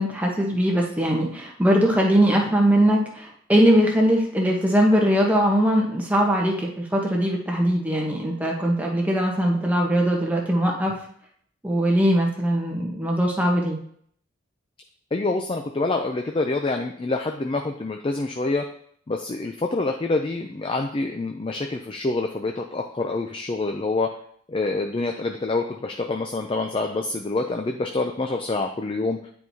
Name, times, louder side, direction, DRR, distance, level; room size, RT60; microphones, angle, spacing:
voice 1, 0.0-10.9 11.6-13.8, equal, 10° right, -1 dB, 1.0 m, -21 dB
voice 2, 15.1-18.6 19.1-24.1 24.5-29.3, left 3 dB, 25° left, 4 dB, 0.4 m, -26 dB
9.7 x 4.6 x 2.8 m, 0.63 s
head